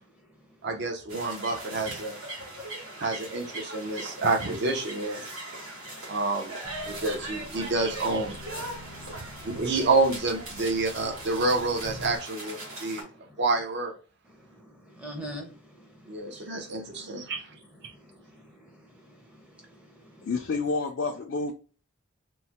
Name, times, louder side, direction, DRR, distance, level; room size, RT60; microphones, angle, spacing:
voice 1, 0.1-0.7 2.4-3.0 3.7-4.2 5.2-6.4 6.8-7.1 8.7-9.6 10.7-10.9 12.6-13.4 14.2-20.3, equal, 5° right, 0.6 m, -49 dB
voice 2, 0.6-2.2 3.0-5.3 6.1-6.5 6.8-8.5 9.2-13.1 13.4-13.9 16.1-17.5, right 3 dB, 50° right, 0.6 m, -28 dB
sound 1, 1.1-13.0, right 1 dB, 70° right, 1.3 m, -40 dB
sound 2, 6.6-12.2, equal, 25° right, 0.9 m, -47 dB
voice 3, 20.2-21.5, left 3 dB, 55° left, 0.4 m, -29 dB
3.1 x 2.1 x 2.8 m
head